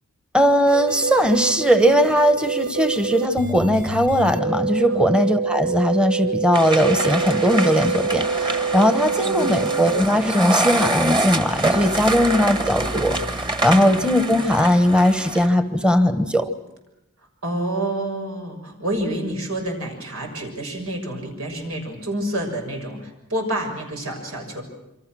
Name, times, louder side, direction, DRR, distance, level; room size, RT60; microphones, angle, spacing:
voice 1, 0.3-16.5, equal, 5° right, 9 dB, 1.1 m, -19 dB
sound 1, 0.7-10.0, right 5 dB, 40° right, 1.3 m, -26 dB
sound 2, 6.5-15.5, right 2 dB, 20° right, 1.7 m, -26 dB
voice 2, 9.2-9.6 13.7-14.0 17.4-24.6, right 1 dB, 90° right, 3 dB, 6.8 m, -28 dB
28.0 x 25.0 x 6.3 m, 0.90 s
head